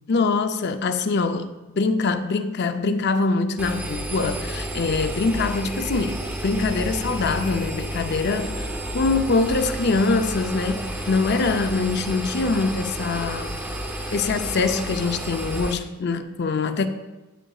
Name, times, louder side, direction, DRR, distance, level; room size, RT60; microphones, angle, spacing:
voice 1, 0.1-13.6 14.1-16.9, left 3 dB, 50° left, 0.5 m, -24 dB
Engine, 3.6-15.7, right 1 dB, 10° right, 0.6 m, -31 dB
9.0 x 8.9 x 2.4 m
head